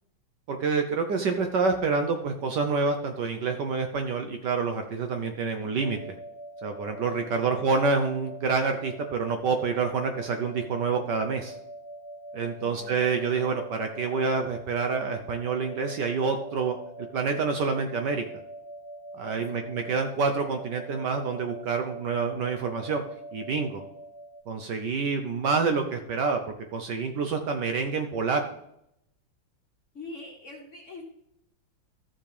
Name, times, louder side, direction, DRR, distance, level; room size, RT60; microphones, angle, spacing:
voice 1, 0.5-6.2 6.6-11.5 12.3-16.8 17.1-18.2 19.1-23.0 23.3-23.8 24.5-26.4 26.7-28.4, right 4 dB, 65° right, 5 dB, 1.2 m, -27 dB
voice 2, 5.4-5.7 7.2-7.7 12.6-13.0 19.3-20.0 29.9-31.0, left 2 dB, 40° left, 1 dB, 1.5 m, -45 dB
sound 1, 5.8-24.4, right 1 dB, 55° left, 1.5 m, -43 dB
14.0 x 6.0 x 3.3 m, 0.78 s
omnidirectional pair, 2.3 m